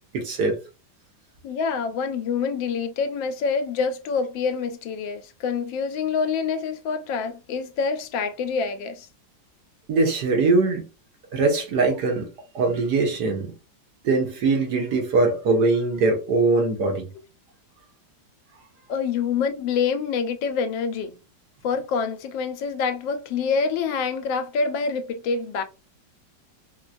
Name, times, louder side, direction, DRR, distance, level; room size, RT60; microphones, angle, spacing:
voice 1, 0.1-0.6 9.9-10.9 11.3-12.3 12.5-13.5 14.0-17.0, right 3 dB, 65° right, 1.5 m, -21 dB
voice 2, 1.4-9.1 18.9-21.2 21.6-25.6, left 5 dB, 90° left, 1.4 m, -26 dB
4.5 x 2.2 x 2.5 m
omnidirectional pair, 2.0 m